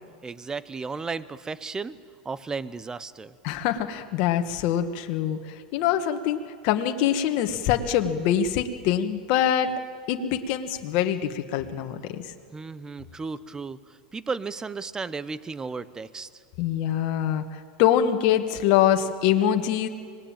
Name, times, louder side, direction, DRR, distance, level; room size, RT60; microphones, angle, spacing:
voice 1, 0.2-2.0 2.2-3.3 12.5-16.3, right 4 dB, 15° right, 16 dB, 0.8 m, -34 dB
voice 2, 3.4-9.7 10.1-12.3 16.6-19.9, left 10 dB, 55° left, 6 dB, 1.7 m, -24 dB
25.5 x 19.5 x 8.9 m, 2.1 s
supercardioid pair, 120°, 4 cm